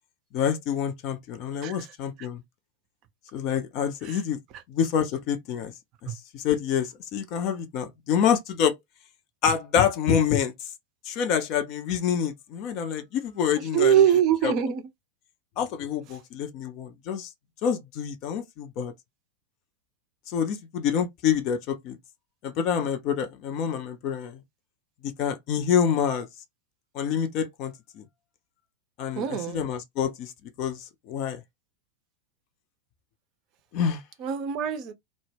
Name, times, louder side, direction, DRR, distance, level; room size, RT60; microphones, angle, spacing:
voice 1, 0.3-2.4 3.3-4.4 4.7-5.7 6.0-8.8 9.4-10.5 11.1-14.0 14.4-14.5 15.6-17.3 17.6-18.9 20.3-22.0 22.4-24.4 25.0-26.3 26.9-28.0 29.0-30.3 30.6-31.4 33.7-34.0, left 8 dB, 40° left, 0.4 m, -27 dB
voice 2, 13.7-14.8 29.2-29.6 34.2-34.9, right 9 dB, 40° right, 0.5 m, -23 dB
2.1 x 2.0 x 3.2 m
figure-of-eight pair, 90°, 0 cm